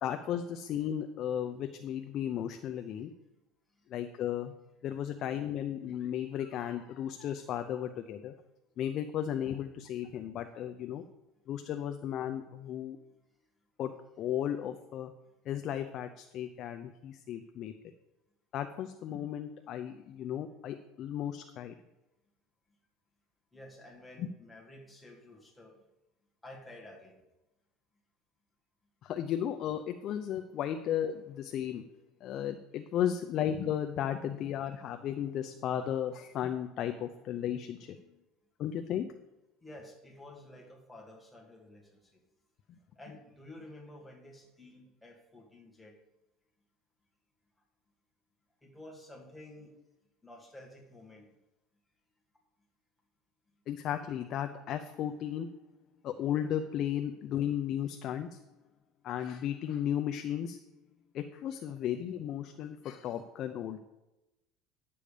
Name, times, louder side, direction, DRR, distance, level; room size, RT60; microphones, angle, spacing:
voice 1, 0.0-3.1 3.9-4.5 4.8-8.3 8.8-11.0 11.5-13.0 13.8-15.1 15.5-17.7 18.5-21.7 24.2-24.3 29.0-31.8 32.2-38.0 38.6-39.1 53.7-55.5 56.0-58.4 59.0-60.6 61.1-63.8, left 10 dB, 40° left, 6 dB, 0.5 m, -35 dB
voice 2, 23.5-25.8 26.4-27.2 39.0-39.1 39.6-42.2 43.0-45.9 48.6-49.7 50.2-51.3, left 1 dB, 5° left, -2 dB, 1.8 m, -51 dB
10.5 x 7.0 x 5.0 m, 0.97 s
cardioid pair, 165°, 0 cm